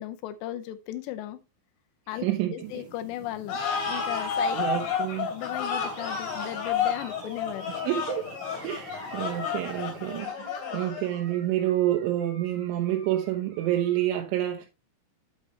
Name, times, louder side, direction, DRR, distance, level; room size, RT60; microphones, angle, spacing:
voice 1, 0.0-1.4 2.1-3.6 3.9-4.6 5.3-7.7, left 13 dB, 80° left, 2.7 m, -36 dB
voice 2, 2.2-2.5 4.5-5.3 7.8-8.3 8.6-10.3 10.7-14.7, right 13 dB, 90° right, 3.4 m, -28 dB
sound 1, 2.6-10.2, right 1 dB, 25° left, 4.3 m, -51 dB
sound 2, 3.5-11.3, left 6 dB, 50° left, 4.2 m, -31 dB
Animal, 5.9-14.1, right 2 dB, 35° right, 1.8 m, -48 dB
8.4 x 8.0 x 3.1 m
omnidirectional pair, 5.3 m